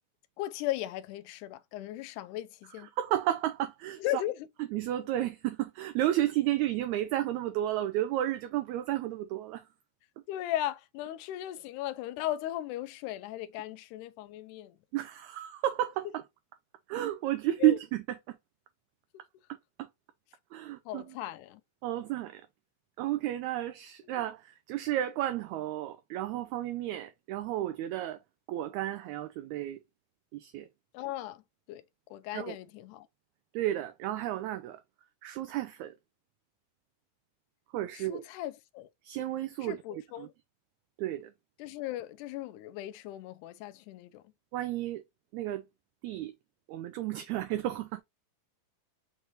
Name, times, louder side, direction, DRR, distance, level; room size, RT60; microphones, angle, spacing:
voice 1, 0.4-2.9 4.0-4.5 10.3-14.8 17.6-17.8 19.1-19.2 20.9-21.6 24.0-24.1 30.9-31.4 31.7-31.8 32.1-33.1 37.9-38.9 39.6-40.3 41.6-44.2, left 13 dB, 80° left, 2.0 m, -37 dB
voice 2, 3.0-4.0 4.7-9.6 14.9-16.2 16.9-18.4 19.8-19.9 20.5-21.0 21.8-22.4 23.0-28.2 28.5-29.8 30.3-30.7 32.3-32.6 33.5-34.8 35.2-35.9 37.7-38.2 39.0-40.3 41.0-41.3 44.5-45.0 45.3-45.7 46.0-46.3 46.7-48.0, right 13 dB, 80° right, 1.7 m, -32 dB
6.2 x 3.2 x 2.4 m
omnidirectional pair, 3.7 m